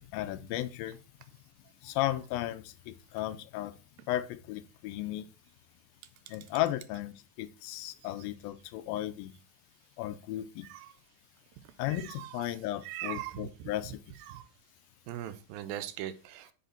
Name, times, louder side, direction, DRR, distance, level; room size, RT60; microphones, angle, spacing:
voice 1, 0.1-1.0 1.8-3.7 4.1-5.3 6.3-9.3 10.0-10.7 11.8-14.0, left 14 dB, 90° left, 2.5 m, -35 dB
voice 2, 11.9-12.3 12.8-13.7 14.3-14.4 15.1-16.5, right 12 dB, 85° right, 2.5 m, -40 dB
9.3 x 4.9 x 4.3 m
omnidirectional pair, 4.1 m